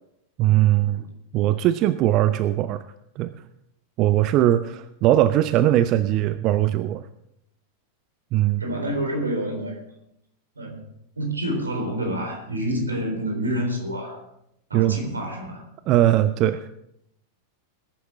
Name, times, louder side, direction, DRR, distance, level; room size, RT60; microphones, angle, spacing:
voice 1, 0.4-1.0 1.3-2.8 3.2-3.3 4.0-7.0 8.3-8.6 14.7-15.0 15.9-16.7, right 13 dB, 40° right, 14 dB, 0.5 m, -20 dB
voice 2, 8.6-9.8 10.6-10.8 11.2-14.2 14.7-15.7, equal, 75° right, 3 dB, 3.8 m, -28 dB
20.0 x 11.0 x 3.6 m, 0.79 s
figure-of-eight pair, 90°, 0 cm